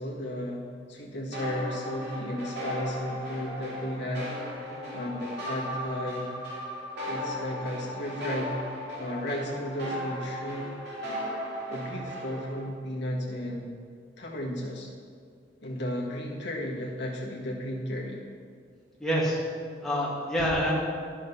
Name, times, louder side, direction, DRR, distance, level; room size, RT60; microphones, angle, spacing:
voice 1, 0.0-4.3 4.9-6.3 7.1-8.6 9.0-10.7 11.7-13.7 14.2-14.9 15.6-18.2, equal, 65° left, -3 dB, 1.6 m, -34 dB
sound 1, 1.3-12.6, equal, 60° right, 2.9 m, -36 dB
voice 2, 4.7-5.0 19.0-19.4 19.8-20.7, equal, ahead, -6 dB, 2.1 m, -27 dB
11.0 x 6.4 x 5.5 m, 2.2 s
head